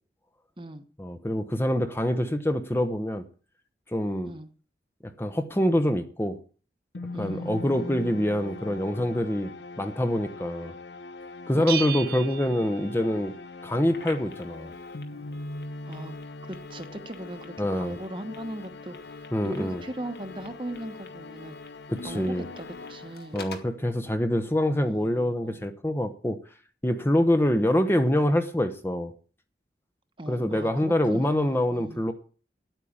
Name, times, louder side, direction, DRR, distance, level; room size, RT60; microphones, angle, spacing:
voice 1, 1.0-3.2 3.9-4.3 5.2-6.4 7.2-9.5 9.8-10.7 11.5-13.3 13.6-14.7 17.6-18.0 19.3-19.8 21.9-22.4 23.3-26.4 26.8-29.1 30.3-32.1, left 1 dB, 15° left, 8 dB, 0.9 m, -25 dB
sound 1, 6.9-23.7, left 3 dB, 80° left, 0.8 m, -41 dB
voice 2, 7.1-8.1 11.5-11.8 15.9-16.1 16.5-21.5 22.0-23.4 24.7-25.7 30.2-32.0, right 1 dB, 30° right, 9 dB, 1.1 m, -39 dB
Bell, 11.7-13.5, right 10 dB, 60° right, 1.2 m, -35 dB
Telephone, 13.9-23.8, left 4 dB, 65° left, 2.1 m, -49 dB
10.0 x 9.1 x 8.7 m, 0.41 s
head